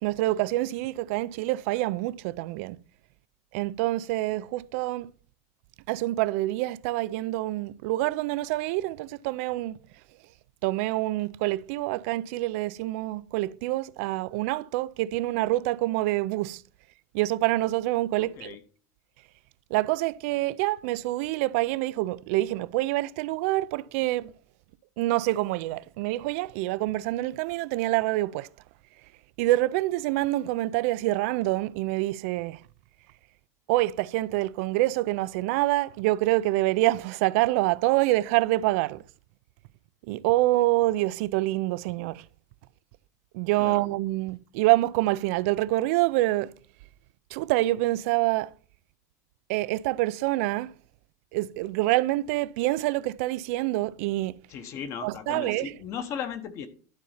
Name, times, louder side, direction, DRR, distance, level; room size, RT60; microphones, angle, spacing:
voice 1, 0.0-2.8 3.5-5.1 5.9-9.8 10.6-16.6 17.1-18.6 19.7-24.3 25.0-28.5 29.4-32.6 33.7-39.0 40.1-42.3 43.3-46.5 47.3-48.5 49.5-50.7 51.3-54.4 55.0-55.7, right 18 dB, 60° right, 0.4 m, -26 dB
voice 2, 18.2-18.6 43.6-43.8 54.5-56.7, left 8 dB, 35° left, 1.1 m, -36 dB
12.0 x 4.2 x 5.7 m
supercardioid pair, 160°, 8 cm